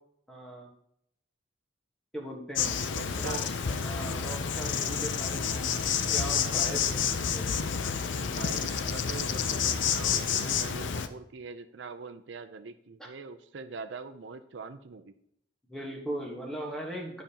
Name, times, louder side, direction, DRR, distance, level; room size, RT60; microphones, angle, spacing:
voice 1, 0.3-0.7 2.1-2.8 3.2-3.4 3.7-5.7 6.1-7.6 13.0-13.1 15.7-17.2, right 1 dB, 5° left, -1 dB, 1.3 m, -39 dB
Insect, 2.6-11.1, left 7 dB, 80° left, 0.5 m, -29 dB
voice 2, 2.9-3.4 8.3-15.1, right 4 dB, 80° right, 9 dB, 0.5 m, -43 dB
11.5 x 5.2 x 2.9 m, 0.73 s
head